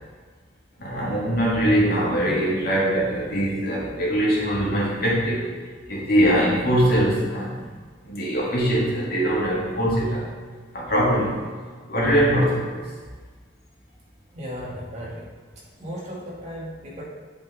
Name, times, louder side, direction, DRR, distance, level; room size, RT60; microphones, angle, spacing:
voice 1, 0.8-5.5 5.9-7.6 8.0-10.3 10.7-11.4 11.9-12.9, equal, 55° left, -5 dB, 2.2 m, -22 dB
voice 2, 14.3-15.3 15.8-17.0, equal, 40° right, -6 dB, 2.1 m, -35 dB
8.2 x 5.3 x 3.7 m, 1.5 s
head